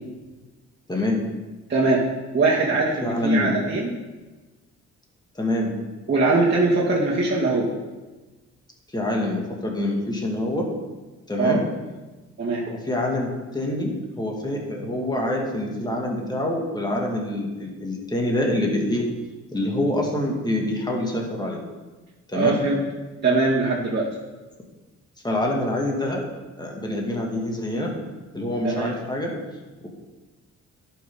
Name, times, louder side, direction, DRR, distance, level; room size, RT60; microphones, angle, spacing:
voice 1, 0.9-1.2 3.0-3.5 5.4-5.7 8.9-10.7 11.3-11.6 12.7-19.1 19.5-21.6 22.3-22.6 25.2-26.3 26.6-27.9 28.3-29.3 29.8-29.9, left 1 dB, 15° left, -1 dB, 2.2 m, -26 dB
voice 2, 2.3-3.9 6.1-7.7 11.4-11.6 12.4-12.6 22.3-22.8 23.2-24.1 28.6-28.9, right 3 dB, 35° right, -6 dB, 2.0 m, -21 dB
11.5 x 6.0 x 3.8 m, 1.2 s
cardioid pair, 75°, 29 cm